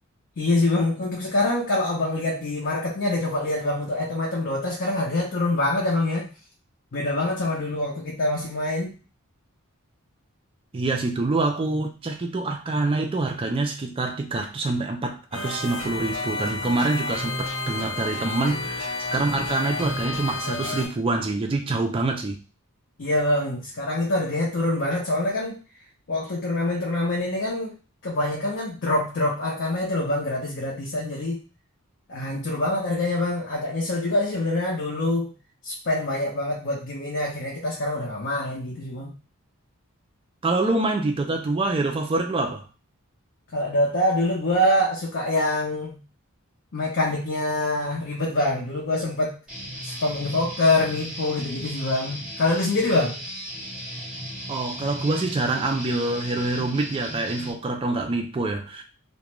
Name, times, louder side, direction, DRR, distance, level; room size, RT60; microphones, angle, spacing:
voice 1, 0.4-6.3 6.9-8.9 23.0-25.6 26.1-27.7 28.0-31.4 32.1-35.3 35.6-39.1 43.5-46.0 46.7-49.4 49.8-53.2, left 1 dB, 55° left, 0.6 m, -25 dB
voice 2, 10.7-22.4 40.4-42.6 54.5-58.8, right 2 dB, 25° right, 0.3 m, -26 dB
sound 1, 15.3-20.9, left 2 dB, 75° left, 1.1 m, -30 dB
Guitar, 49.5-57.5, equal, 5° right, 0.9 m, -36 dB
2.4 x 2.1 x 2.9 m
head